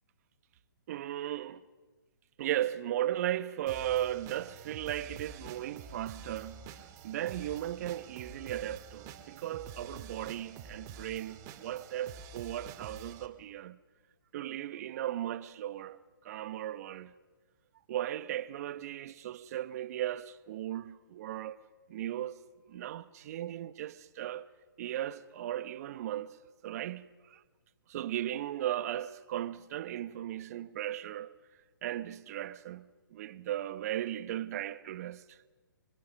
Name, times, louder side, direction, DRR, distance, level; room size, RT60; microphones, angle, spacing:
voice 1, 0.9-1.6 2.4-6.7 7.0-13.8 14.3-17.1 17.9-21.6 21.9-22.4 22.7-24.5 24.8-26.4 26.6-27.4 27.9-31.3 31.8-35.4, right 12 dB, 45° right, 1.0 m, -36 dB
sound 1, 3.7-13.3, right 5 dB, 30° right, 2.0 m, -48 dB
26.5 x 24.0 x 6.4 m
hypercardioid pair, 135°, 11 cm